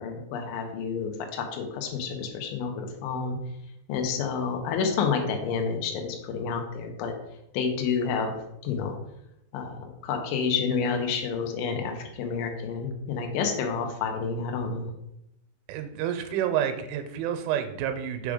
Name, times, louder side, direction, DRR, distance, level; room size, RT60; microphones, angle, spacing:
voice 1, 0.0-3.4 3.9-7.1 7.5-9.0 9.5-14.9, left 5 dB, 80° left, 3 dB, 3.3 m, -29 dB
voice 2, 15.7-18.3, right 9 dB, 85° right, 8 dB, 3.1 m, -29 dB
7.3 x 3.7 x 4.9 m, 0.81 s
omnidirectional pair, 5.4 m